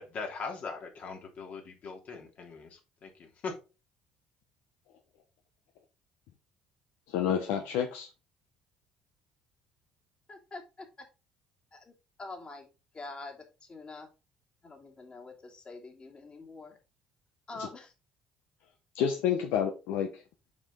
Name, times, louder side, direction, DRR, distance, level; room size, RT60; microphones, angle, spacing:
voice 1, 0.0-3.5, left 4 dB, 55° left, 2 dB, 2.8 m, -41 dB
voice 2, 7.1-8.1 18.9-20.2, left 8 dB, 75° left, 5 dB, 1.0 m, -29 dB
voice 3, 10.3-11.1 11.7-11.9 12.2-12.7 12.9-14.1 14.6-16.8 17.5-17.9, left 3 dB, 35° left, 2 dB, 2.8 m, -45 dB
7.2 x 5.4 x 3.9 m, 0.30 s
hypercardioid pair, 65°, 3 cm